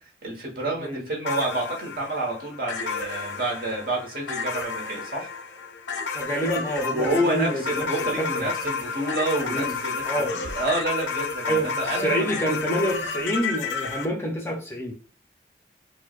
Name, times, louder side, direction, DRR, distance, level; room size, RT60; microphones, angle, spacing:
voice 1, 0.2-5.3 6.9-12.2, right 1 dB, 55° right, -1 dB, 1.1 m, -28 dB
sound 1, 1.2-14.1, left 5 dB, 85° left, 0.5 m, -31 dB
voice 2, 6.1-8.5 9.5-9.8 10.0-10.4 11.5-14.9, equal, 15° left, 1 dB, 0.5 m, -28 dB
4.5 x 2.1 x 2.3 m, 0.40 s
head